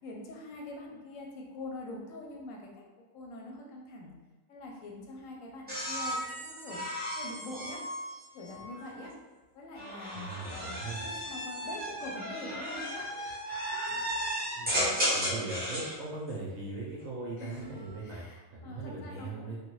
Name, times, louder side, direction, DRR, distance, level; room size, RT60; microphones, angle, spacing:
voice 1, 0.0-2.7 3.0-4.1 4.5-7.8 8.3-9.1 9.5-13.1 17.4-19.6, left 2 dB, 70° left, -1 dB, 0.8 m, -44 dB
sound 1, 5.7-8.9 9.7-16.0 17.4-17.9, equal, 15° right, 0.4 m, -35 dB
voice 2, 10.1-11.0 14.6-14.8 15.1-18.2 18.5-19.6, right 3 dB, 70° right, -5 dB, 0.9 m, -39 dB
3.2 x 2.1 x 3.0 m, 1.2 s
omnidirectional pair, 1.7 m